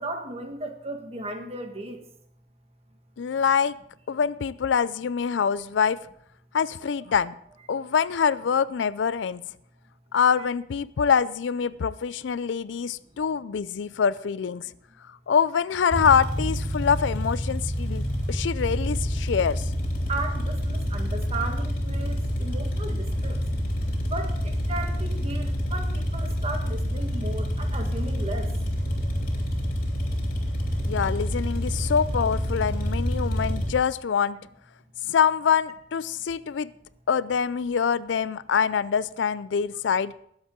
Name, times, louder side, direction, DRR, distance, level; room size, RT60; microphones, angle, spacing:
voice 1, 0.0-2.0 10.4-10.5 18.2-18.5 20.1-23.4 24.1-28.5, right 2 dB, 35° right, 4 dB, 1.6 m, -35 dB
voice 2, 3.2-3.8 4.1-6.0 6.5-7.3 7.7-9.5 10.1-14.7 15.3-19.6 30.9-34.4 35.1-36.7 37.1-40.1, left 7 dB, 75° left, 18 dB, 0.4 m, -25 dB
sound 1, 15.9-33.7, equal, 50° left, 3.2 m, -27 dB
19.5 x 8.1 x 3.8 m, 0.70 s
head